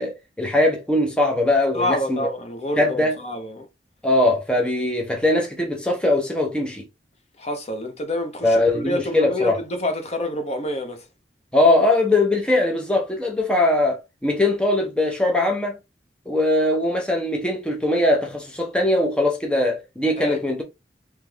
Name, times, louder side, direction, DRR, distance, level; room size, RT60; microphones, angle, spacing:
voice 1, 0.0-2.3 2.8-3.1 4.0-6.8 8.4-9.6 11.5-15.8 16.3-20.6, left 1 dB, 5° left, 0.8 m, -21 dB
voice 2, 1.7-3.7 7.4-11.0 20.2-20.4, left 1 dB, 40° left, 0.9 m, -28 dB
3.4 x 3.1 x 3.4 m
head